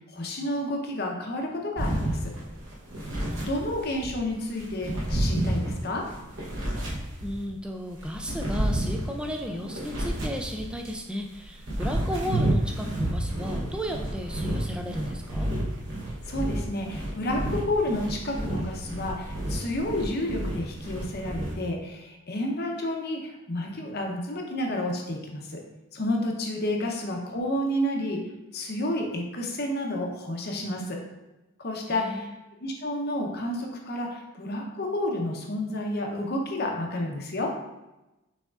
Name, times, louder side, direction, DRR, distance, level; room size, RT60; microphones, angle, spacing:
voice 1, 0.1-2.3 3.5-6.1 16.3-25.6 25.9-31.0 31.6-32.3 32.6-37.6, left 1 dB, 45° left, 1 dB, 0.7 m, -30 dB
sound 1, 1.8-4.1 4.6-7.5 8.0-11.0 11.4-21.5, right 1 dB, 60° right, 1.0 m, -30 dB
voice 2, 3.3-3.8 6.7-15.5 26.8-27.0 31.9-32.4, equal, 5° right, 2 dB, 0.3 m, -35 dB
6.3 x 3.5 x 2.4 m, 1.0 s
head